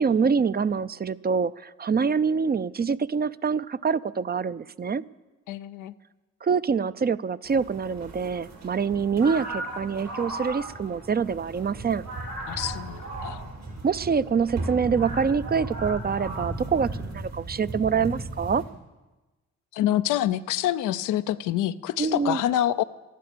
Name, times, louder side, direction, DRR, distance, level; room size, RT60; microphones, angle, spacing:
voice 1, 0.0-5.0 6.4-12.0 13.8-18.6 22.0-22.4, right 6 dB, 30° right, 16 dB, 0.5 m, -25 dB
voice 2, 5.5-5.9 12.5-13.4 19.7-22.8, left 12 dB, 90° left, 13 dB, 0.5 m, -26 dB
sound 1, 7.4-18.6, right 2 dB, 65° right, 6.4 m, -36 dB
13.5 x 11.0 x 6.8 m, 1.1 s
supercardioid pair, 55°, 30 cm